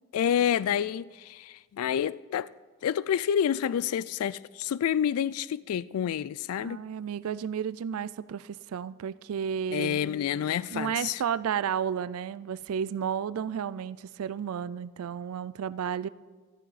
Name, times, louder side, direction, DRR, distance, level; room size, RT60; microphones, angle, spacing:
voice 1, 0.1-2.5 2.8-6.8 9.7-11.2, left 9 dB, 90° left, 0.3 m, -28 dB
voice 2, 6.6-10.0 10.7-16.1, right 8 dB, 85° right, 0.4 m, -32 dB
14.5 x 13.0 x 4.1 m
head